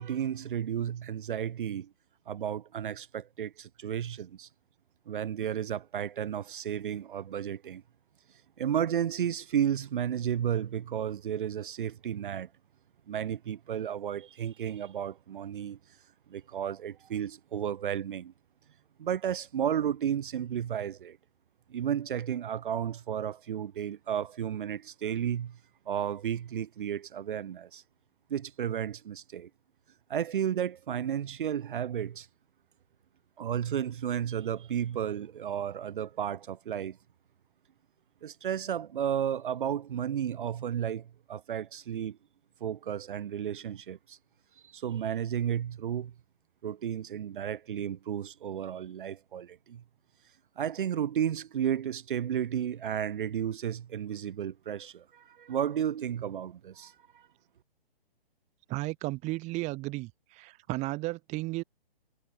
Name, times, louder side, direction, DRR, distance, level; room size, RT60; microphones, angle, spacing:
voice 1, 0.0-1.9 2.3-4.5 5.1-7.8 8.6-12.5 13.1-15.8 16.3-18.3 19.0-21.2 21.7-25.6 25.8-27.8 28.3-29.5 30.1-32.3 33.4-37.0 38.2-42.2 42.6-44.2 44.6-46.1 46.6-49.8 50.6-57.3, right 9 dB, 55° right, 1.6 m, -33 dB
voice 2, 58.7-61.6, right 21 dB, 25° right, 2.2 m, -34 dB
hypercardioid pair, 140°, 30 cm